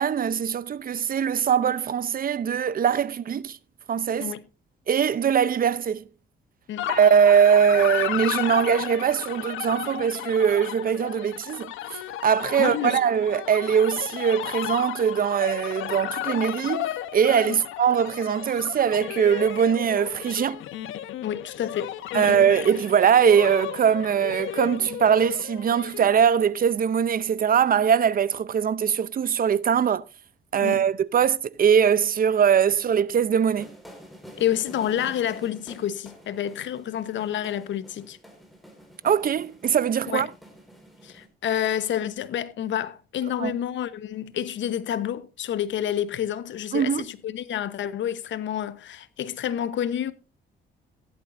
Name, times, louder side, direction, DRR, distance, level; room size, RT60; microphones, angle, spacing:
voice 1, 0.0-3.6 3.9-4.3 4.9-6.0 6.9-11.7 12.2-20.6 22.1-30.0 30.5-33.7 39.0-40.3 43.4-43.6 46.7-47.0, right 8 dB, 45° right, 0.6 m, -21 dB
sound 1, 6.8-26.2, left 13 dB, 85° left, 1.0 m, -34 dB
voice 2, 12.6-13.0 17.5-17.6 21.2-22.4 30.6-30.8 34.4-38.2 40.1-40.3 41.0-50.1, left 10 dB, 70° left, 1.0 m, -29 dB
sound 2, 33.5-41.3, equal, ahead, 4.7 m, -48 dB
15.5 x 11.5 x 2.6 m
cardioid pair, 90°, 20 cm